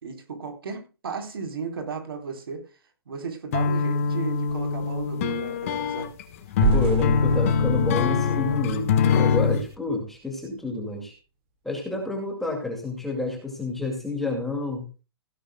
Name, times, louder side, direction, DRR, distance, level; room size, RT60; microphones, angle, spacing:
voice 1, 0.0-2.6 3.1-6.1, right 5 dB, 70° right, 5 dB, 4.1 m, -34 dB
sound 1, 3.5-9.7, left 6 dB, 35° left, 1.4 m, -23 dB
sound 2, 6.6-9.6, right 7 dB, 30° right, 2.1 m, -29 dB
voice 2, 6.7-11.2 11.6-14.9, left 2 dB, ahead, 1 dB, 2.3 m, -30 dB
16.5 x 11.5 x 2.3 m, 0.30 s
hypercardioid pair, 170°, 13 cm